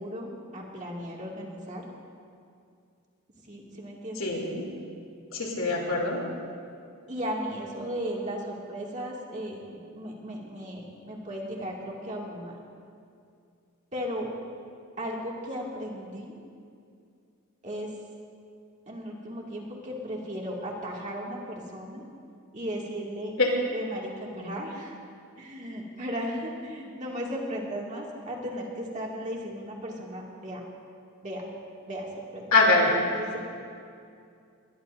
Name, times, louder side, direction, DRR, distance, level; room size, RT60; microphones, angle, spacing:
voice 1, 0.0-1.8 3.5-4.3 7.1-12.6 13.9-14.3 15.0-16.3 17.6-17.9 18.9-22.1 22.5-23.3 23.7-25.0 25.4-30.6 31.2-31.4 31.9-32.5 33.1-33.4, equal, 35° right, -2 dB, 2.3 m, -36 dB
voice 2, 4.2-4.6 5.3-6.2 23.4-23.5 32.5-33.0, left 2 dB, 70° left, -1 dB, 3.1 m, -23 dB
21.0 x 21.0 x 2.7 m, 2.4 s
head